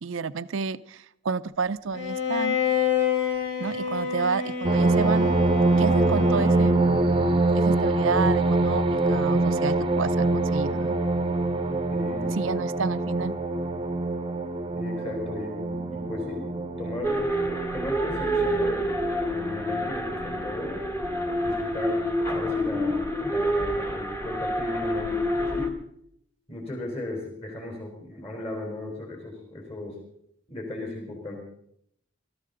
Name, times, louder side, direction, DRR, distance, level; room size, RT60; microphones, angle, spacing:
voice 1, 0.0-2.6 3.6-5.3 5.8-6.8 7.1-11.0 12.4-13.4, right 5 dB, 75° right, 15 dB, 0.5 m, -30 dB
Bowed string instrument, 1.9-7.0, left 7 dB, 70° left, 3.0 m, -28 dB
sound 1, 4.6-21.6 22.3-22.4 22.8-23.1, right 2 dB, 25° right, 0.8 m, -25 dB
voice 2, 11.9-12.4 14.8-17.2 17.7-19.0 19.2-20.8 21.4-22.1 22.3-25.8 26.5-30.0 30.5-31.4, left 1 dB, 30° left, 1 dB, 3.9 m, -36 dB
sound 2, 17.0-25.7, equal, 10° left, 1.3 m, -27 dB
20.5 x 13.0 x 3.9 m, 0.73 s
head